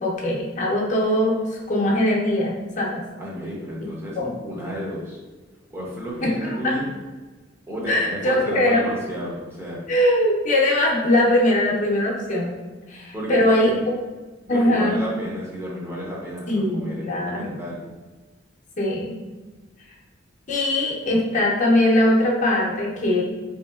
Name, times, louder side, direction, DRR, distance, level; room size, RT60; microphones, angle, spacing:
voice 1, 0.0-3.0 4.2-4.3 6.2-6.7 7.9-8.9 9.9-12.6 12.9-13.8 14.5-15.0 16.5-17.6 18.8-19.2 20.5-23.2, left 1 dB, 40° left, -2 dB, 0.6 m, -21 dB
voice 2, 3.2-5.2 5.7-6.9 7.7-9.8 13.1-13.8 14.5-17.9, equal, 15° right, -5 dB, 0.7 m, -32 dB
3.1 x 2.8 x 2.3 m, 1.2 s
head